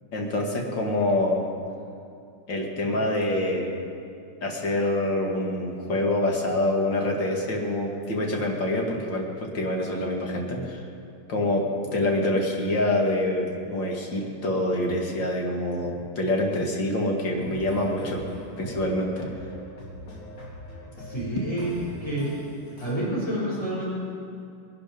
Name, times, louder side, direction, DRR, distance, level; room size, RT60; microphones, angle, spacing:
voice 1, 0.1-1.4 2.5-3.7 4.4-9.3 9.5-10.8 11.3-18.3 18.6-19.3, left 1 dB, 65° left, 0 dB, 2.7 m, -26 dB
sound 1, 17.4-22.9, equal, 85° left, 3.6 m, -42 dB
voice 2, 21.0-22.3 22.8-23.9, right 1 dB, 15° left, -12 dB, 5.0 m, -29 dB
21.0 x 11.5 x 5.3 m, 2.6 s
omnidirectional pair, 2.2 m